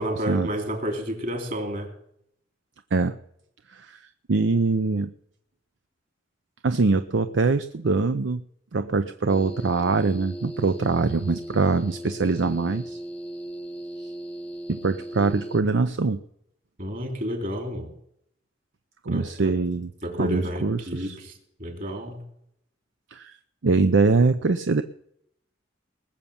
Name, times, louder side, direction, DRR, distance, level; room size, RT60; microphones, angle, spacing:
voice 1, 0.0-1.9 16.8-17.9 19.1-19.6 20.0-21.3 21.6-22.2, equal, 45° right, 4 dB, 3.3 m, -30 dB
voice 2, 3.7-5.1 6.6-8.4 8.7-13.0 14.7-16.2 19.0-19.9 20.2-21.2 23.1-23.3 23.6-24.8, right 3 dB, 65° right, 10 dB, 0.6 m, -23 dB
sound 1, 9.3-15.6, right 1 dB, 5° left, 0.6 m, -38 dB
20.0 x 7.1 x 7.1 m, 0.74 s
head